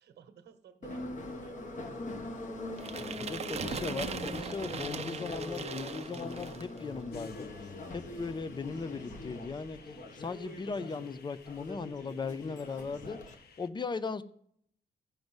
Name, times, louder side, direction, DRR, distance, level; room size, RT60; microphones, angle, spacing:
voice 1, 0.0-2.1, right 8 dB, 80° right, 1.2 m, -56 dB
Subway metro underground, 0.8-13.3, left 2 dB, 45° left, 1.6 m, -42 dB
sound 1, 2.8-6.8, right 6 dB, 40° right, 0.6 m, -40 dB
voice 2, 3.0-7.5 7.9-9.8 10.2-13.2 13.6-14.2, left 4 dB, 25° left, 0.6 m, -38 dB
sound 2, 7.1-13.7, left 6 dB, 70° left, 0.9 m, -58 dB
14.5 x 5.3 x 7.9 m
cardioid pair, 130°, 17 cm